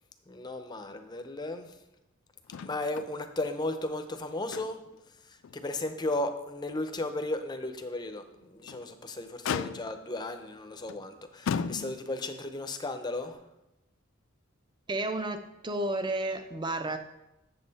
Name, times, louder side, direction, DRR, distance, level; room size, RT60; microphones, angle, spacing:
voice 1, 0.3-1.8 2.6-4.8 5.2-13.4, left 2 dB, 20° left, 7 dB, 0.6 m, -35 dB
Motor vehicle (road), 2.5-3.1 3.4-3.5 4.1-5.0 5.4-5.6 6.1-6.2 8.4-8.9 9.4-10.1 10.9-11.0 11.5-12.3 13.3-13.4, left 6 dB, 70° left, 0.3 m, -35 dB
voice 2, 14.9-17.0, right 2 dB, 20° right, 8 dB, 0.6 m, -32 dB
7.5 x 7.0 x 4.1 m, 0.91 s
head